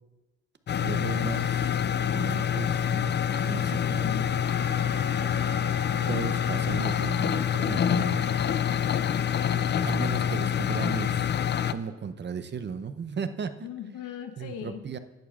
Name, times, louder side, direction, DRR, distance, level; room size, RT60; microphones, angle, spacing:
sound 1, 0.7-11.7, left 9 dB, 35° left, 0.4 m, -26 dB
voice 1, 0.8-1.8 2.1-3.2 3.4-4.4 6.1-8.3 9.8-11.3 11.7-13.7 14.4-15.0, right 6 dB, 35° right, 11 dB, 0.7 m, -36 dB
voice 2, 3.8-4.3 13.6-14.9, left 9 dB, 85° left, 7 dB, 1.1 m, -40 dB
Wind instrument woodwind instrument, 4.4-8.3, left 2 dB, 65° left, 2.4 m, -45 dB
15.5 x 11.0 x 2.4 m, 1.1 s
cardioid pair, 90°, 30 cm